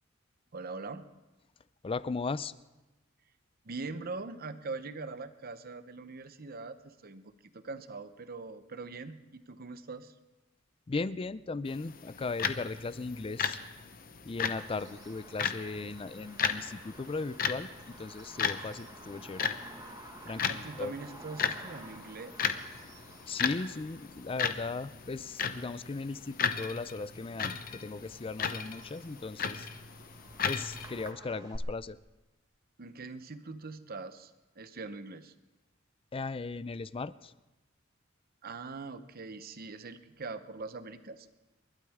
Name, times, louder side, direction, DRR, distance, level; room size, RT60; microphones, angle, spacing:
voice 1, 0.5-1.1 3.6-10.1 20.3-22.5 32.8-35.3 38.4-41.3, right 3 dB, 50° right, 11 dB, 0.8 m, -42 dB
voice 2, 1.8-2.5 10.9-13.6 14.2-19.4 20.2-20.9 23.3-29.7 30.4-32.0 36.1-37.3, left 3 dB, 25° left, 16 dB, 0.4 m, -37 dB
sound 1, 11.7-31.1, left 7 dB, 45° left, 0.8 m, -36 dB
Bird vocalization bird call bird song, 14.6-31.6, right 2 dB, 20° right, 1.5 m, -52 dB
29.5 x 12.0 x 3.6 m, 1.1 s
head